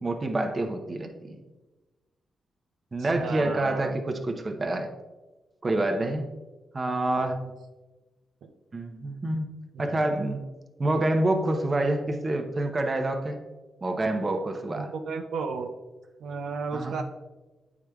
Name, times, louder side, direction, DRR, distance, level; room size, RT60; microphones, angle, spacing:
voice 1, 0.0-1.4 2.9-4.9 5.6-6.2 6.7-7.4 8.7-9.5 9.8-10.4 10.8-13.4 13.8-14.9 16.7-17.0, right 2 dB, 30° right, 5 dB, 0.6 m, -27 dB
voice 2, 3.2-4.0 7.2-7.4 8.4-8.5 9.7-10.0 14.7-15.7 16.2-17.0, right 5 dB, 85° right, 5 dB, 0.5 m, -34 dB
8.7 x 4.8 x 2.3 m, 1.2 s
wide cardioid pair, 125°, 0 cm